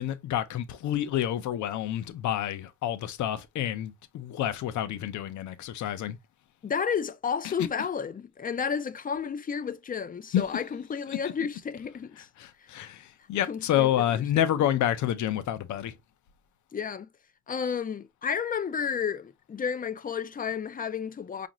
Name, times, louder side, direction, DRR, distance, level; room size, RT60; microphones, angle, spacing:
voice 1, 0.0-6.2 7.4-7.5 10.3-10.4 12.4-15.9, left 11 dB, 75° left, 0.7 m, -28 dB
voice 2, 6.6-12.3 13.5-14.2 16.7-17.1 17.5-21.5, left 7 dB, 30° left, 0.5 m, -32 dB
5.0 x 2.5 x 2.9 m
cardioid pair, 90°, 30 cm